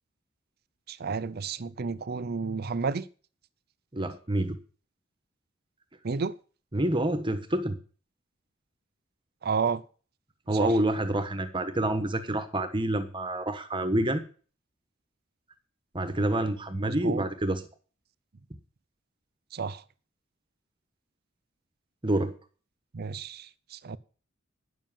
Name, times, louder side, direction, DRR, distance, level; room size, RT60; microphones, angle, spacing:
voice 1, 0.9-3.0 6.0-6.3 9.4-9.8 10.5-10.8 16.8-17.3 19.5-19.8 22.9-24.0, right 5 dB, 50° right, 0.6 m, -31 dB
voice 2, 3.9-4.6 6.7-7.8 10.5-14.2 15.9-17.6 22.0-22.3, right 1 dB, 25° right, 1.2 m, -27 dB
10.5 x 7.4 x 7.3 m
head